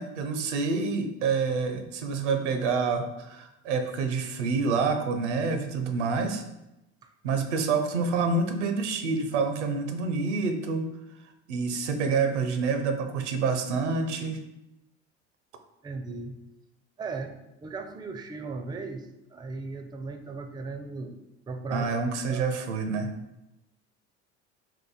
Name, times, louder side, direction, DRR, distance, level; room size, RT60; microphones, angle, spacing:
voice 1, 0.0-6.4 7.2-10.9 11.5-14.4 21.7-23.1, right 4 dB, 80° right, 7 dB, 0.6 m, -27 dB
voice 2, 15.8-16.4 17.0-17.3 17.6-21.2 21.5-21.9 22.3-22.4, right 3 dB, 10° right, 6 dB, 0.4 m, -36 dB
3.8 x 2.6 x 4.0 m, 0.92 s
hypercardioid pair, 65°, 35 cm